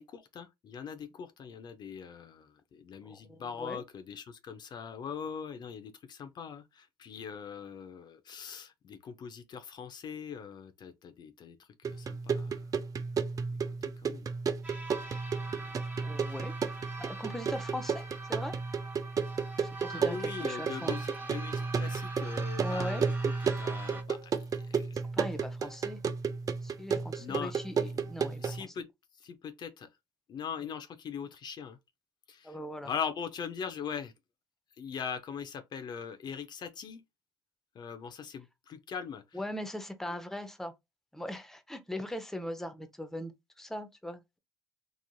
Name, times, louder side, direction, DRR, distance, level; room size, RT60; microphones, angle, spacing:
voice 1, 0.0-11.6 11.8-12.5 14.0-14.3 15.4-15.8 19.9-23.1 23.6-24.4 24.7-25.0 27.2-27.5 28.4-28.9 29.2-29.9 30.3-31.8 32.3-32.6 32.8-34.1 34.8-37.0 37.8-39.4, left 7 dB, 45° left, 0.5 m, -41 dB
voice 2, 3.0-3.8 16.0-16.5 17.0-18.5 19.6-21.0 22.6-23.0 25.1-26.0 26.6-28.6 32.4-32.9 39.3-40.7 41.1-43.3 43.6-44.4, left 1 dB, 5° left, 0.6 m, -40 dB
sound 1, 11.8-28.6, right 5 dB, 35° right, 0.4 m, -33 dB
sound 2, 14.6-24.0, right 3 dB, 20° right, 1.1 m, -44 dB
3.0 x 2.4 x 2.3 m
hypercardioid pair, 65°, 10 cm